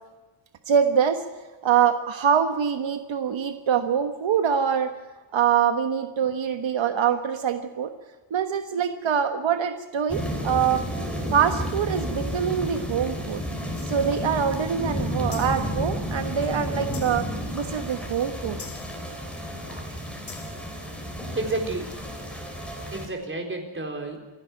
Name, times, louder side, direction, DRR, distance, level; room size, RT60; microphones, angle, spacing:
voice 1, 0.7-1.2 1.6-4.9 5.3-7.9 8.3-10.8 11.3-13.4 13.8-17.3 17.5-18.6 19.7-19.9, right 7 dB, 75° right, 8 dB, 1.4 m, -24 dB
sound 1, 10.1-23.1, equal, ahead, 4.2 m, -32 dB
sound 2, 13.8-14.1 15.3-15.8 16.9-17.4 18.6-19.1 20.3-20.8 21.9-22.0, left 5 dB, 40° left, 1.7 m, -44 dB
voice 2, 21.2-21.9 22.9-24.2, right 2 dB, 25° right, 2 dB, 4.1 m, -31 dB
28.0 x 11.0 x 9.5 m, 1.2 s
wide cardioid pair, 160°, 46 cm